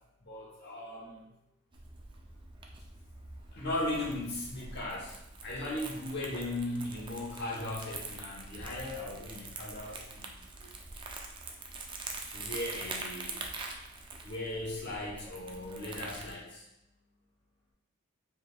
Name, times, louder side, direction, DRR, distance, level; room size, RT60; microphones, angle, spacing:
voice 1, 0.2-1.3 3.5-10.7 12.2-13.4 14.2-16.7, left 1 dB, 50° left, -5 dB, 1.1 m, -38 dB
Crumpling crinkling, 1.7-16.3, right 3 dB, 25° right, 0.4 m, -44 dB
4.9 x 3.4 x 2.4 m, 0.86 s
head